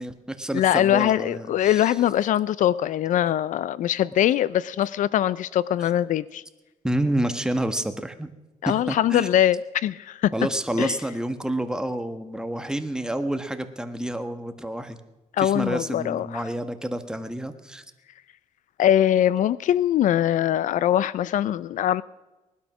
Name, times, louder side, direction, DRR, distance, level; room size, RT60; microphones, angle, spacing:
voice 1, 0.0-1.9 6.8-8.3 8.6-9.3 10.3-15.0 15.4-17.8, right 1 dB, 5° right, 8 dB, 1.3 m, -29 dB
voice 2, 0.5-6.4 8.6-10.3 10.8-10.9 15.3-16.4 18.8-22.0, left 11 dB, 70° left, 19 dB, 0.4 m, -22 dB
19.5 x 12.0 x 6.1 m, 1.1 s
cardioid pair, 115°, 14 cm